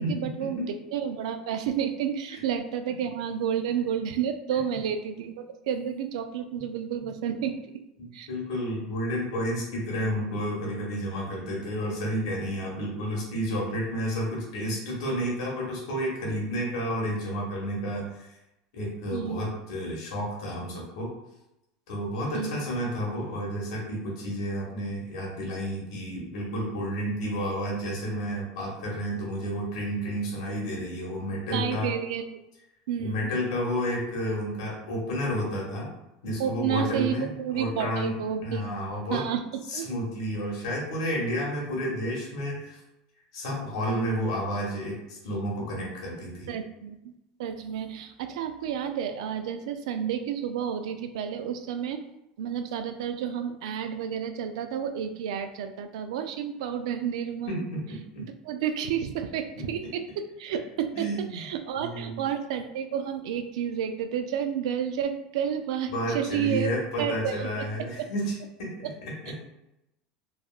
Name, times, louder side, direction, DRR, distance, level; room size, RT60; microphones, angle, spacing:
voice 1, 0.0-7.8 8.1-8.3 19.1-19.5 22.3-22.6 31.5-32.2 32.9-33.3 36.4-38.6 39.1-39.4 39.7-39.8 46.5-47.1 47.4-52.0 52.4-57.7 58.2-61.0 61.3-66.7 67.0-67.5 68.0-68.1 69.3-69.4, right 8 dB, 80° right, 8 dB, 0.3 m, -31 dB
voice 2, 8.0-18.3 18.7-21.1 21.9-31.9 33.0-35.9 36.2-38.1 38.4-39.2 39.7-42.8 43.3-46.5 57.5-58.2 59.5-59.6 60.9-61.4 61.8-62.2 65.9-68.3 68.6-69.3, equal, 80° left, -3 dB, 1.2 m, -31 dB
3.4 x 2.3 x 2.3 m, 0.88 s
supercardioid pair, 110°, 3 cm